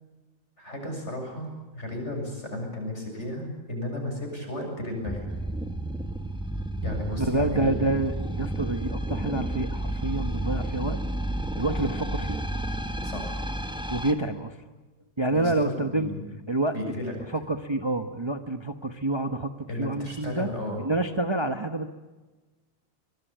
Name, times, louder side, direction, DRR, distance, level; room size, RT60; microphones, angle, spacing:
voice 1, 0.6-5.3 6.8-7.7 13.0-13.4 15.3-16.2 16.7-17.1 19.7-20.8, left 1 dB, 55° left, 2 dB, 7.8 m, -34 dB
sound 1, 5.0-14.1, right 1 dB, 5° right, 1.6 m, -31 dB
voice 2, 7.2-11.0 11.6-12.4 13.9-14.6 15.2-16.1 16.5-20.5 20.8-21.9, right 2 dB, 20° right, 7 dB, 1.1 m, -28 dB
24.5 x 21.5 x 9.1 m, 1.2 s
omnidirectional pair, 1.4 m